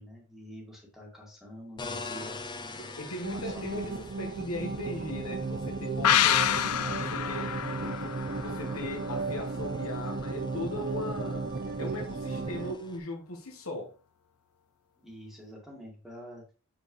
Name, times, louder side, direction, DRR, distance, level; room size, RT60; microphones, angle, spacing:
voice 1, 0.0-4.0 15.0-16.4, equal, ahead, 2.1 m, -47 dB
sound 1, 1.8-13.0, left 4 dB, 20° left, 0.6 m, -46 dB
voice 2, 3.0-6.7 6.9-11.5 11.8-13.9, left 1 dB, 65° left, 1.2 m, -38 dB
sound 2, 3.2-12.7, right 3 dB, 40° right, 0.5 m, -35 dB
sound 3, 6.0-9.5 9.8-9.9, left 10 dB, 85° left, 0.5 m, -28 dB
7.5 x 4.6 x 3.1 m
head